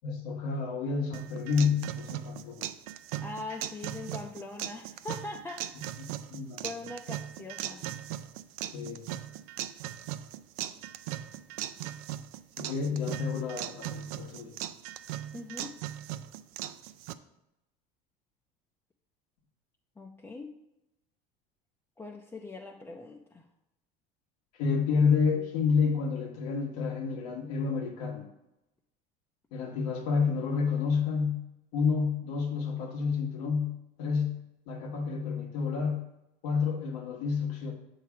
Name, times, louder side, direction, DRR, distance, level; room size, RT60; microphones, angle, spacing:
voice 1, 0.0-2.7 6.3-6.6 8.7-9.0 12.6-14.5 24.5-28.3 29.5-31.5 31.7-36.1 36.4-37.7, left 5 dB, 90° left, 2 dB, 1.3 m, -29 dB
sound 1, 1.1-17.1, right 13 dB, 90° right, 0.4 m, -39 dB
voice 2, 3.2-5.7 6.6-7.8 15.3-15.7 20.0-20.5 22.0-23.4, left 3 dB, 15° left, -1 dB, 0.5 m, -41 dB
7.1 x 3.2 x 5.8 m, 0.89 s
supercardioid pair, 120°, 18 cm